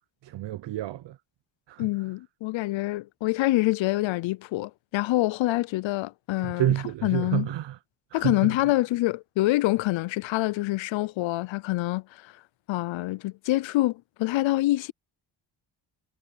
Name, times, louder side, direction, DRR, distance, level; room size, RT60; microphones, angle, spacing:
voice 1, 0.2-1.2 1.7-1.9 6.4-7.8 8.1-8.7, right 13 dB, 70° right, 0.7 m, -29 dB
voice 2, 1.8-6.7 7.0-7.5 8.1-12.3 12.7-14.9, left 18 dB, 80° left, 0.6 m, -26 dB
cardioid pair, 85°, 45 cm